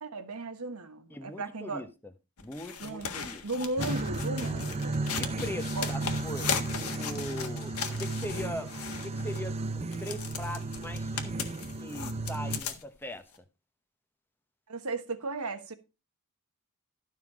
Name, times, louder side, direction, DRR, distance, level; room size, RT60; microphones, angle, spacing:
voice 1, 0.0-1.8 2.8-5.0 5.7-5.9 14.7-15.7, right 2 dB, 75° right, 1.3 m, -36 dB
voice 2, 1.1-2.1 2.4-3.4 5.2-8.7 9.0-13.3, left 1 dB, 10° left, 1.0 m, -40 dB
sound 1, 2.4-9.4 9.9-13.0 13.3-13.4, left 6 dB, 80° left, 1.5 m, -37 dB
sound 2, 3.8-12.6, right 3 dB, 30° right, 0.6 m, -34 dB
12.5 x 5.8 x 4.8 m
head